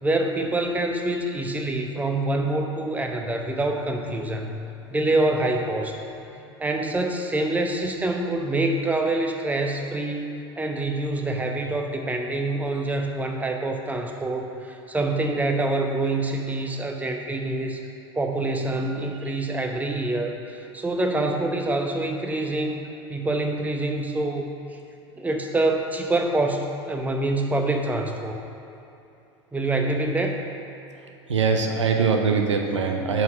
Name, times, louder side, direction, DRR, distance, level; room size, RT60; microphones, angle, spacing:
voice 1, 0.0-4.5 4.9-6.0 6.6-10.3 10.6-17.8 18.1-24.5 25.2-26.6 26.9-28.4 29.5-30.4, right 2 dB, 10° right, 3 dB, 0.9 m, -26 dB
voice 2, 31.3-33.2, right 5 dB, 90° right, 4 dB, 0.8 m, -22 dB
9.3 x 4.1 x 6.2 m, 2.8 s
hypercardioid pair, 90°, 15 cm